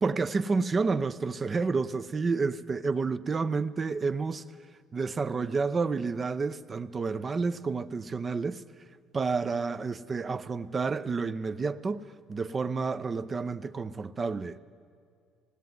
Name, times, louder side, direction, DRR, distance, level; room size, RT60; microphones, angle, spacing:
voice 1, 0.0-4.4 4.9-8.6 9.1-14.6, right 4 dB, 30° right, 0.7 m, -30 dB
19.5 x 17.0 x 9.5 m
cardioid pair, 110°, 0 cm